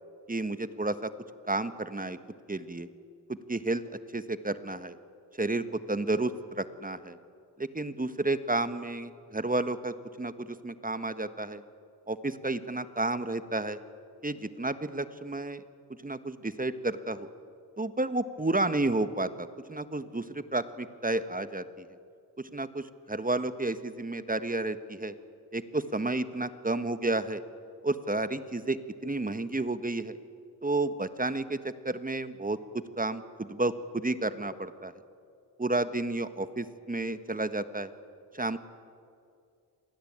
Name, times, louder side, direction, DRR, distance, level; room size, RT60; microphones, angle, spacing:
voice 1, 0.3-1.1 1.5-2.2 2.5-2.9 3.3-3.8 4.1-5.0 5.4-7.2 7.6-11.6 12.1-13.8 14.2-15.6 16.0-17.3 17.8-21.8 22.5-25.1 25.5-27.4 27.8-30.2 30.6-34.9 35.6-37.9 38.3-38.6, right 2 dB, 20° right, 11 dB, 1.4 m, -31 dB
26.0 x 19.0 x 8.9 m, 2.3 s
cardioid pair, 55°, 45 cm